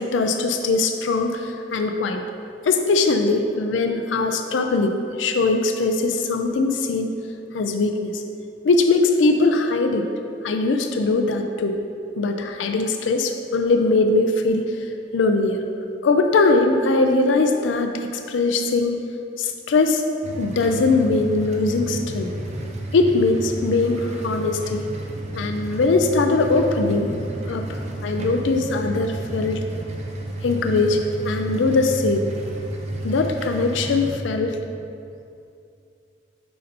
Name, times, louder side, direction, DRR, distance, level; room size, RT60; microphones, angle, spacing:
voice 1, 0.0-2.2 2.6-7.1 7.5-8.2 8.6-10.1 10.4-11.8 12.2-15.6 16.0-19.0 19.4-20.0 20.4-22.3 22.9-24.9 25.3-27.1 27.5-29.6 30.4-32.3 33.0-34.6, left 3 dB, 75° left, 5 dB, 0.4 m, -21 dB
sound 1, 20.2-34.2, right 1 dB, 40° right, 0.6 m, -31 dB
5.5 x 5.2 x 4.1 m, 2.5 s
head